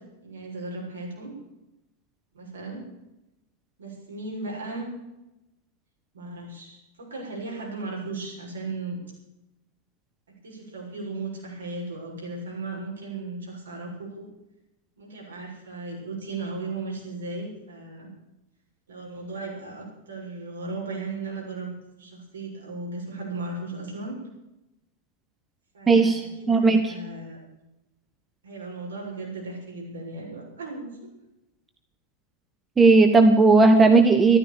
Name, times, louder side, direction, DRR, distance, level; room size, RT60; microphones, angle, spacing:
voice 1, 0.2-1.3 2.3-2.8 3.8-4.9 6.1-9.0 10.4-14.3 15.0-18.1 18.9-24.2 25.7-27.4 28.4-30.9, right 3 dB, 70° right, -2 dB, 7.0 m, -36 dB
voice 2, 25.9-26.8 32.8-34.4, right 3 dB, 15° right, 7 dB, 1.3 m, -16 dB
14.5 x 12.5 x 7.2 m, 0.92 s
figure-of-eight pair, 90°, 0 cm